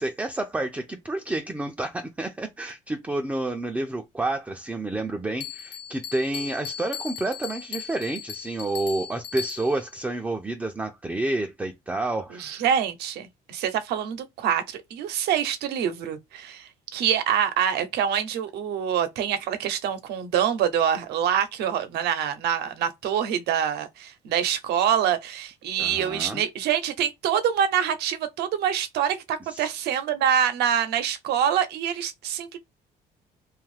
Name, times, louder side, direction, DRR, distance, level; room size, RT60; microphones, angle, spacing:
voice 1, 0.0-12.6 25.8-26.4 29.5-29.7, right 2 dB, 10° right, 0.4 m, -29 dB
Bell, 5.4-9.9, left 8 dB, 90° left, 0.6 m, -37 dB
voice 2, 12.3-32.6, right 9 dB, 75° right, 0.7 m, -25 dB
2.6 x 2.3 x 3.2 m
cardioid pair, 110°, 17 cm